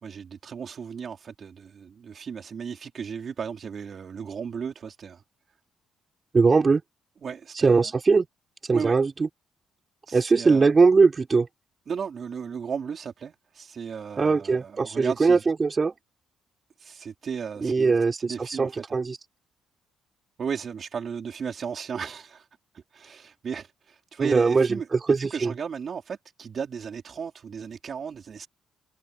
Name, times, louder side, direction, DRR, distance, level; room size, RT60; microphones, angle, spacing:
voice 1, 0.0-5.2 7.2-7.9 8.7-9.0 10.1-10.7 11.9-15.5 16.8-19.0 20.4-22.5 22.7-24.9 25.2-28.5, right 6 dB, 50° right, 3.6 m, -35 dB
voice 2, 6.3-6.8 7.6-8.2 8.7-9.3 10.1-11.5 14.2-15.9 17.6-19.2 24.2-25.5, right 4 dB, 30° right, 6.1 m, -21 dB
cardioid pair, 90°, 0 cm